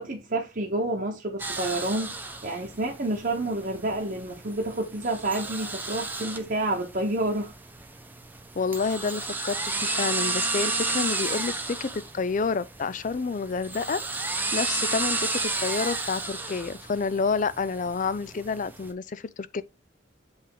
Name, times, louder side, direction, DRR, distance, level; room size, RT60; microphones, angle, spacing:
voice 1, 0.0-7.5, right 2 dB, 45° right, 1.0 m, -29 dB
sound 1, 1.4-18.9, right 3 dB, 10° right, 0.8 m, -33 dB
voice 2, 8.5-14.0 14.5-19.6, left 4 dB, 40° left, 0.4 m, -29 dB
7.9 x 3.4 x 3.8 m
head